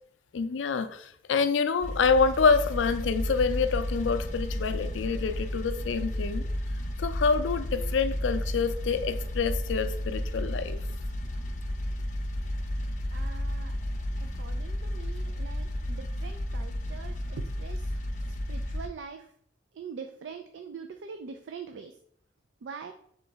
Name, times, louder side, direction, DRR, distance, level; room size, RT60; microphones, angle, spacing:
voice 1, 0.3-6.4 7.0-10.8, left 5 dB, 80° left, 10 dB, 0.4 m, -27 dB
sound 1, 1.8-18.9, left 1 dB, 40° left, 0.6 m, -32 dB
voice 2, 13.1-13.8 14.2-17.9 18.2-19.3 19.7-22.0 22.6-22.9, right 5 dB, 70° right, 7 dB, 0.4 m, -43 dB
3.8 x 3.1 x 4.5 m, 0.65 s
head